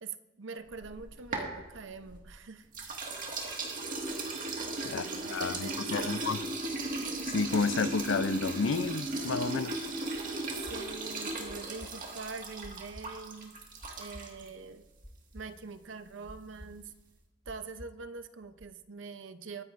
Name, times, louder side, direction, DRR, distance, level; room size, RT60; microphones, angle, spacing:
voice 1, 0.0-2.7 4.8-6.4 10.5-13.6 14.0-14.9 15.3-16.9 17.5-19.6, right 4 dB, 70° right, 0.7 m, -44 dB
sound 1, 0.7-2.3 2.7-14.5, right 2 dB, 45° right, 1.9 m, -36 dB
voice 2, 4.8-6.4 7.3-9.8, left 4 dB, 75° left, 0.5 m, -31 dB
sound 2, 10.7-18.6, equal, ahead, 0.5 m, -51 dB
22.0 x 9.9 x 2.6 m
head